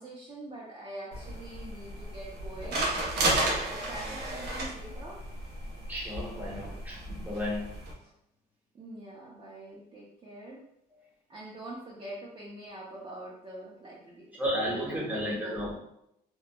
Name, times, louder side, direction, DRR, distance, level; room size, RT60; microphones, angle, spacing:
voice 1, 0.0-5.2 8.7-10.6 11.3-14.4 14.7-15.8, right 1 dB, 30° right, -6 dB, 0.6 m, -44 dB
sound 1, 1.1-7.9, right 1 dB, 75° right, 0.8 m, -33 dB
voice 2, 5.9-7.7 14.4-15.8, equal, 10° right, -5 dB, 1.0 m, -33 dB
2.9 x 2.2 x 2.2 m, 0.77 s
cardioid pair, 110°, 17 cm